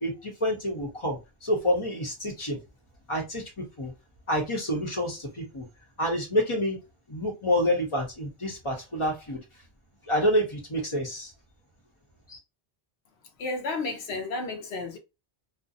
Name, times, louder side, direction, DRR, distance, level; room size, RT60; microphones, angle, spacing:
voice 1, 0.0-2.6 3.1-3.4 3.8-3.9 4.3-5.6 6.0-6.8 7.1-9.4 10.1-11.3 12.3-12.4, equal, 30° left, 0.9 m, -28 dB
voice 2, 13.4-15.0, left 3 dB, 75° left, 0.9 m, -32 dB
2.5 x 2.1 x 2.6 m
omnidirectional pair, 1.1 m